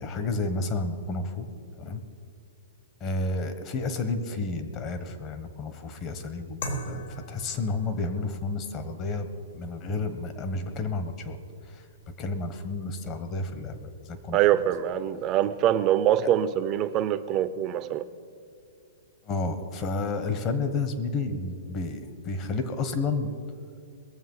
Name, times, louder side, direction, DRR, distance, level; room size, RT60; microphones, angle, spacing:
voice 1, 0.0-1.5 1.8-2.0 3.0-9.3 9.5-11.4 11.7-11.8 12.2-14.4 19.2-23.3, left 3 dB, 30° left, 9 dB, 1.4 m, -31 dB
sound 1, 6.6-15.4, right 1 dB, 70° left, 2.9 m, -44 dB
voice 2, 14.3-18.0, right 11 dB, 30° right, 13 dB, 0.7 m, -24 dB
21.5 x 7.5 x 5.6 m, 2.4 s
hypercardioid pair, 135°, 0 cm